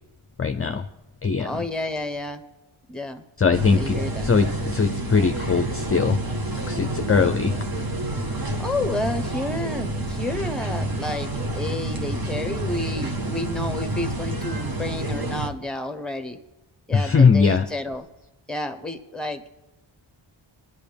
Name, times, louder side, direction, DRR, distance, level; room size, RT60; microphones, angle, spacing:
voice 1, 0.4-0.9 1.2-1.5 3.4-4.0 4.2-6.2 6.7-7.5 16.9-17.6, left 5 dB, 30° left, 7 dB, 0.6 m, -20 dB
voice 2, 1.4-2.4 2.9-3.2 3.7-4.3 8.3-16.4 16.9-18.0 18.5-19.5, left 2 dB, ahead, 8 dB, 1.1 m, -31 dB
sound 1, 3.5-15.5, right 1 dB, 45° right, 1.4 m, -28 dB
24.0 x 11.0 x 3.5 m, 0.99 s
wide cardioid pair, 100°, 49 cm